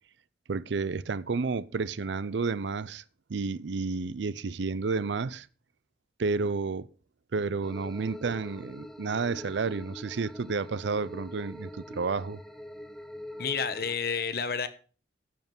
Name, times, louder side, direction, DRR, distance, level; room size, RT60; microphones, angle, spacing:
voice 1, 0.5-3.0 3.3-5.5 6.2-6.9 7.3-12.4, right 4 dB, 75° right, 0.5 m, -31 dB
sound 1, 7.6-14.0, left 1 dB, ahead, 0.7 m, -44 dB
voice 2, 13.4-14.7, left 6 dB, 55° left, 1.0 m, -30 dB
10.5 x 7.3 x 6.0 m
head